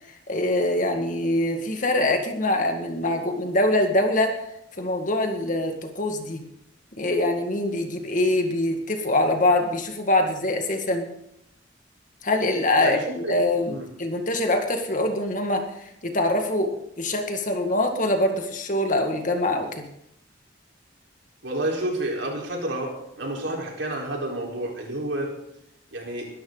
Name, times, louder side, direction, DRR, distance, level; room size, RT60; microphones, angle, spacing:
voice 1, 0.3-4.4 4.8-6.4 6.9-11.1 12.2-19.8, left 1 dB, 45° left, 4 dB, 2.0 m, -24 dB
voice 2, 12.8-13.4 13.7-13.8 21.4-25.3 25.9-26.3, right 1 dB, 75° right, -1 dB, 4.5 m, -30 dB
21.5 x 12.5 x 4.0 m, 0.79 s
head